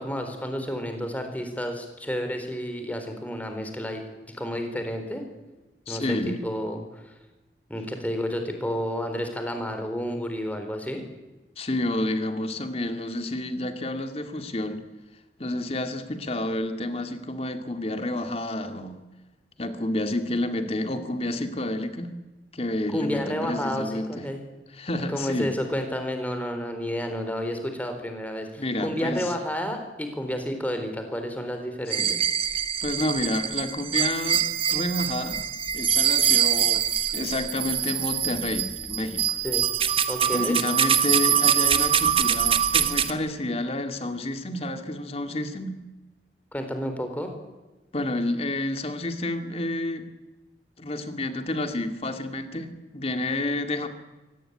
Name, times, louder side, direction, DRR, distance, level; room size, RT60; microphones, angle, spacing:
voice 1, 0.0-4.0 4.3-5.3 5.9-7.1 7.7-11.0 22.9-24.4 25.1-32.2 39.4-39.6 40.1-40.6 46.5-47.3, equal, 10° left, 6 dB, 4.1 m, -31 dB
voice 2, 5.9-6.4 11.6-14.8 15.4-19.0 19.6-22.1 22.5-24.3 24.7-25.5 28.6-29.3 31.9-32.2 32.8-34.4 34.7-35.4 35.7-39.4 40.3-45.8 47.9-50.1 50.8-53.9, left 1 dB, 35° left, 7 dB, 2.3 m, -29 dB
sound 1, 31.9-43.1, right 9 dB, 30° right, 1.3 m, -24 dB
24.0 x 18.0 x 10.0 m, 1.1 s
head